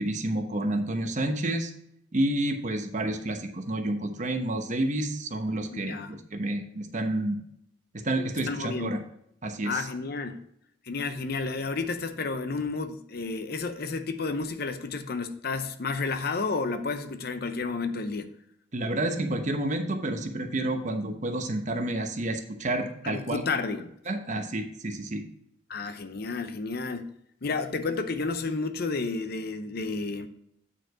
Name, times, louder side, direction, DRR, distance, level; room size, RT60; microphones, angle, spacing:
voice 1, 0.0-1.7 2.1-7.4 7.9-9.0 9.4-9.8 18.7-23.4 24.1-25.2, right 1 dB, 40° right, 6 dB, 0.9 m, -29 dB
voice 2, 5.7-6.2 8.4-9.0 9.6-10.4 10.9-18.3 23.0-23.9 25.7-27.1 27.4-30.3, left 4 dB, 55° left, 9 dB, 0.7 m, -31 dB
8.8 x 4.8 x 4.9 m, 0.74 s
head